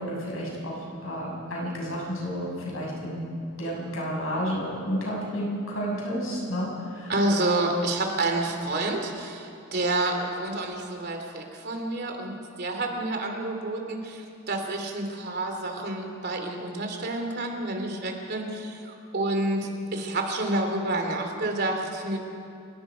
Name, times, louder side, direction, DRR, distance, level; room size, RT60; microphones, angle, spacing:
voice 1, 0.0-3.3 3.6-7.1, equal, 85° left, -3 dB, 7.0 m, -31 dB
voice 2, 7.1-22.2, right 2 dB, 55° right, 3 dB, 2.9 m, -29 dB
29.5 x 18.0 x 5.1 m, 2.6 s
head